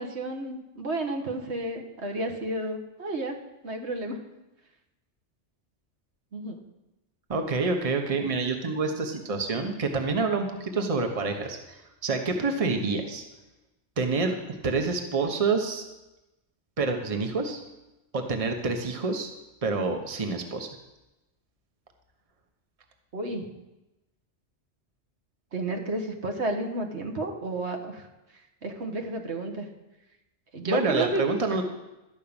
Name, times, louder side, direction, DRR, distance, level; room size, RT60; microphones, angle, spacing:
voice 1, 0.0-3.4 3.6-4.2 6.3-6.6 23.1-23.5 25.5-28.1 28.6-29.7 30.5-31.2, right 1 dB, 70° right, 4 dB, 1.6 m, -31 dB
voice 2, 7.3-13.2 14.0-15.9 16.8-17.6 18.1-19.3 19.6-20.7 30.6-31.6, right 4 dB, 30° right, 4 dB, 1.1 m, -27 dB
12.5 x 5.6 x 8.8 m, 0.99 s
omnidirectional pair, 1.2 m